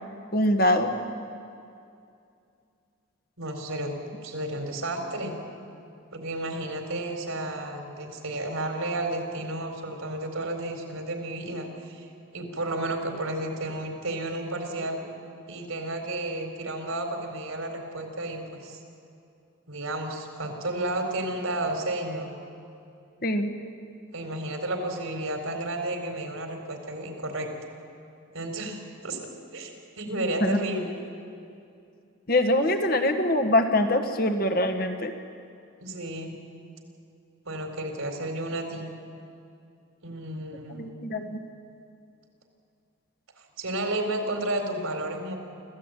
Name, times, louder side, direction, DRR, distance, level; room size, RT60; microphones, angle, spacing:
voice 1, 0.3-1.0 23.2-23.5 30.4-30.6 32.3-35.1 40.7-41.4, left 1 dB, 45° left, 6 dB, 1.6 m, -23 dB
voice 2, 3.4-4.0 4.2-5.4 6.1-12.1 12.3-15.0 15.5-18.8 19.7-22.4 24.1-27.5 28.3-28.8 29.0-29.2 29.5-30.9 35.8-36.4 37.4-38.9 40.0-40.9 43.6-45.4, right 1 dB, 90° right, 3 dB, 4.2 m, -32 dB
25.0 x 15.5 x 9.2 m, 2.5 s
head